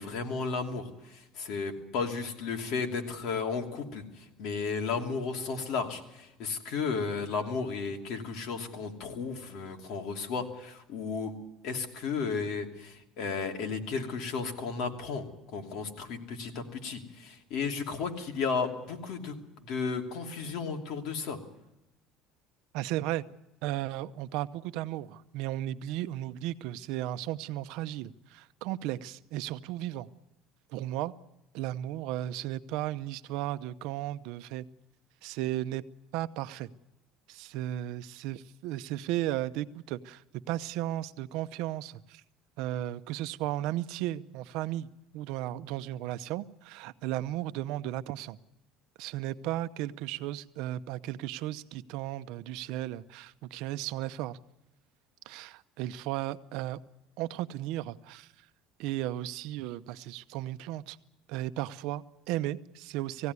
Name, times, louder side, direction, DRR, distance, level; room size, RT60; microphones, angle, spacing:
voice 1, 0.0-11.3 11.6-15.2 15.5-21.4, left 5 dB, 60° left, 3 dB, 2.9 m, -34 dB
voice 2, 22.7-23.2 23.6-30.1 30.7-31.1 31.5-34.6 35.2-35.8 36.1-36.7 37.3-40.2 40.5-42.2 42.6-48.4 49.0-54.4 55.3-56.8 57.2-58.3 58.8-61.0 61.3-63.3, right 14 dB, 70° right, 13 dB, 0.7 m, -35 dB
19.5 x 16.0 x 9.6 m, 0.91 s
cardioid pair, 145°, 0 cm